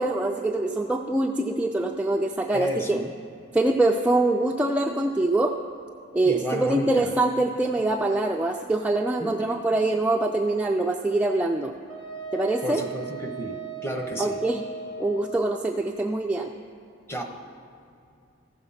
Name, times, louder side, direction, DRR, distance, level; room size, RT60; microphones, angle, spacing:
voice 1, 0.0-3.0 3.5-5.6 6.1-11.7 12.3-12.8 14.2-14.7 15.0-16.5, right 2 dB, 5° right, 1 dB, 0.3 m, -24 dB
voice 2, 2.5-3.1 6.2-7.1 9.2-9.3 12.6-14.4 17.1-17.2, equal, 15° left, 3 dB, 0.9 m, -31 dB
Wind instrument woodwind instrument, 11.9-15.5, right 5 dB, 50° left, 2.6 m, -37 dB
14.5 x 6.7 x 5.7 m, 2.5 s
head